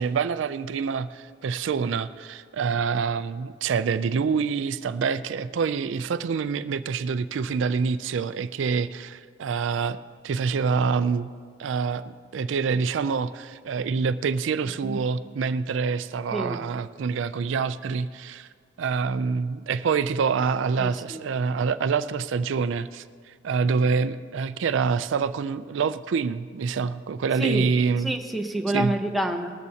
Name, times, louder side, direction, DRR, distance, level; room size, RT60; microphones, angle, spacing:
voice 1, 0.0-10.0 10.2-11.3 11.6-12.0 12.3-18.5 18.8-28.1 28.7-28.9, right 5 dB, 75° right, 13 dB, 0.4 m, -26 dB
voice 2, 20.8-21.2 27.4-27.7 28.0-29.5, right 1 dB, ahead, 2 dB, 0.7 m, -27 dB
19.0 x 13.5 x 2.8 m, 2.1 s
head